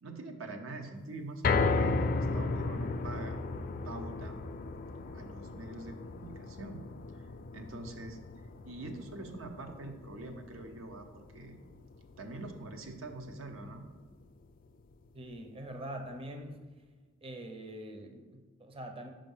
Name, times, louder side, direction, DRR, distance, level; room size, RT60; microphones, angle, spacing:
voice 1, 0.0-3.4 3.8-4.4 5.1-6.8 7.1-7.2 7.5-8.2 8.6-11.6 12.2-13.9, right 2 dB, 90° right, 5 dB, 0.8 m, -44 dB
sound 1, 1.4-13.7 14.1-14.2 14.6-14.7, left 3 dB, 45° left, 0.4 m, -35 dB
voice 2, 15.1-16.7 17.2-19.1, right 1 dB, 30° right, 4 dB, 0.6 m, -43 dB
5.3 x 5.2 x 5.5 m, 1.4 s
head